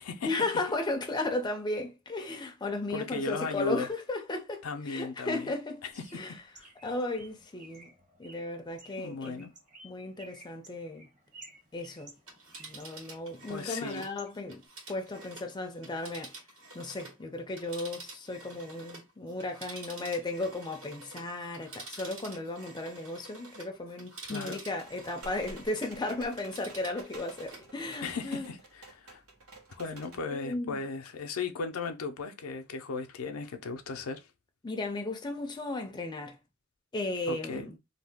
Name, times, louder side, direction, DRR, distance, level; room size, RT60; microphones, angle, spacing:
voice 1, 0.2-5.8 6.1-6.3 6.8-7.9 8.2-9.5 9.8-11.1 11.7-12.1 12.6-14.6 14.9-16.3 16.7-28.4 30.3-30.8 34.6-36.4 36.9-37.8, left 2 dB, 20° left, 0.4 m, -35 dB
voice 2, 2.9-3.9 4.6-5.5 6.6-6.7 9.0-9.5 13.5-14.1 24.3-24.6 28.0-28.6 28.9-29.2 29.7-34.3 37.3-37.7, left 3 dB, 90° left, 0.5 m, -36 dB
Bird, 5.9-14.7, right 2 dB, 35° right, 1.1 m, -55 dB
Telephone, 12.1-17.2 17.5-26.0 26.3-27.7 28.1-28.2, right 2 dB, 65° right, 1.4 m, -48 dB
sound 1, 24.8-30.2, right 2 dB, 85° right, 1.2 m, -51 dB
2.7 x 2.2 x 3.4 m
head